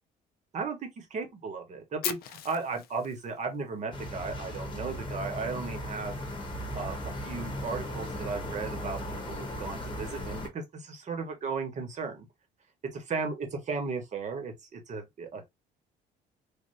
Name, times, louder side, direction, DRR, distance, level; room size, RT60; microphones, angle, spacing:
voice 1, 0.5-6.2 6.7-12.3 12.9-15.4, right 4 dB, 45° right, 1.3 m, -35 dB
Fire, 2.0-4.1, left 12 dB, 65° left, 0.4 m, -38 dB
sound 1, 3.9-10.5, equal, 30° left, 1.0 m, -37 dB
3.5 x 2.5 x 2.6 m
cardioid pair, 110°, 17 cm